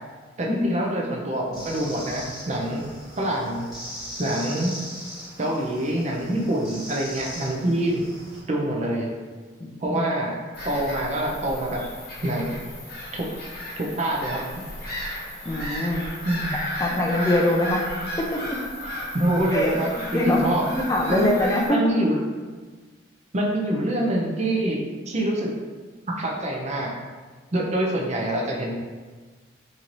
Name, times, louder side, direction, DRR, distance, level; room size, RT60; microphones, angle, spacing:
voice 1, 0.4-2.8 3.2-3.7 4.2-4.8 5.4-8.0 8.5-9.1 9.8-10.4 10.6-11.8 12.2-12.6 13.1-13.3 13.8-14.6 16.2-16.6 19.1-20.6 21.1-22.2 23.3-25.5 26.2-26.9 27.5-28.8, right 1 dB, 35° right, -2 dB, 0.5 m, -25 dB
sound 1, 1.5-8.4, equal, ahead, 1.3 m, -39 dB
voice 2, 9.6-10.0 15.4-16.0 16.8-17.8 18.3-18.4 19.5-20.5 20.7-21.8, left 1 dB, 15° left, -1 dB, 0.4 m, -23 dB
Bird vocalization bird call bird song / Gull seagull, 10.5-21.7, left 1 dB, 50° left, 1.1 m, -34 dB
3.1 x 2.8 x 3.8 m, 1.4 s
head